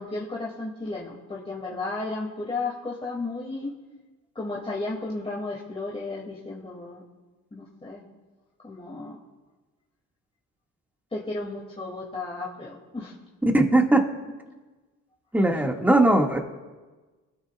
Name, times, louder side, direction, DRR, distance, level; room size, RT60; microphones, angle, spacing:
voice 1, 0.0-3.7 4.3-7.0 7.5-8.0 8.6-9.2 11.1-13.1, left 3 dB, 20° left, -4 dB, 2.7 m, -33 dB
voice 2, 13.5-14.0 14.5-14.6 15.3-16.4, right 1 dB, 5° right, 1 dB, 2.2 m, -19 dB
24.0 x 15.0 x 2.5 m, 1.3 s
cardioid pair, 90°, 30 cm